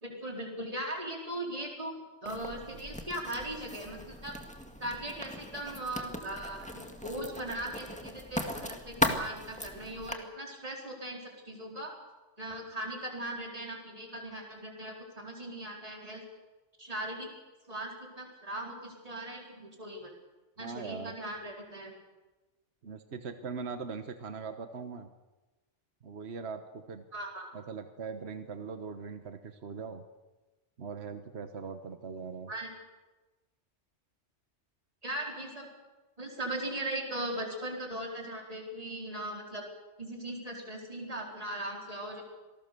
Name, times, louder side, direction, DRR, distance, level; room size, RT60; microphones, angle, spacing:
voice 1, 0.0-4.4 4.8-11.9 12.4-16.2 16.8-17.3 17.7-20.1 20.6-21.9 27.1-27.5 32.5-32.7 35.0-35.7 36.2-39.7 40.0-42.2, right 1 dB, 30° right, 0 dB, 4.4 m, -39 dB
Writing, 2.3-10.1, left 1 dB, 5° left, 2.0 m, -37 dB
voice 2, 20.6-21.1 22.8-25.1 26.0-27.0 27.5-30.0 30.8-32.5, right 5 dB, 65° right, 8 dB, 1.5 m, -41 dB
27.0 x 19.0 x 6.8 m, 1.1 s
omnidirectional pair, 1.2 m